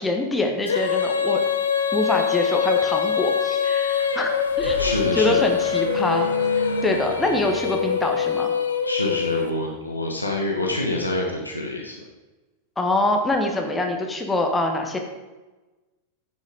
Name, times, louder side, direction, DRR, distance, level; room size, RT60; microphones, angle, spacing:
voice 1, 0.0-1.4 1.9-6.3 6.5-8.5 12.8-15.0, left 2 dB, 10° left, 3 dB, 1.3 m, -24 dB
Female singing, 0.6-9.8, left 7 dB, 70° left, 0.7 m, -24 dB
sound 1, 3.9-8.5, right 1 dB, 90° right, 1.5 m, -34 dB
voice 2, 4.8-5.5 8.8-12.0, left 2 dB, 85° left, -1 dB, 1.1 m, -26 dB
9.6 x 5.5 x 5.0 m, 1.2 s
figure-of-eight pair, 90°, 0 cm